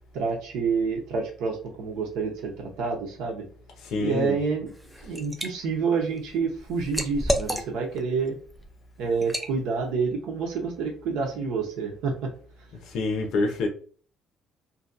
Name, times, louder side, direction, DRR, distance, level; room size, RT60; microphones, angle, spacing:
voice 1, 0.1-3.5 4.0-4.7 5.0-8.3 9.0-12.3, right 5 dB, 85° right, 0.8 m, -28 dB
voice 2, 3.8-4.4 12.9-13.7, left 3 dB, 65° left, 0.7 m, -26 dB
Liquid, 4.7-5.5 5.9-8.0 8.5-8.7 9.2-9.5, equal, ahead, 0.4 m, -30 dB
2.8 x 2.7 x 2.5 m
cardioid pair, 140°, 0 cm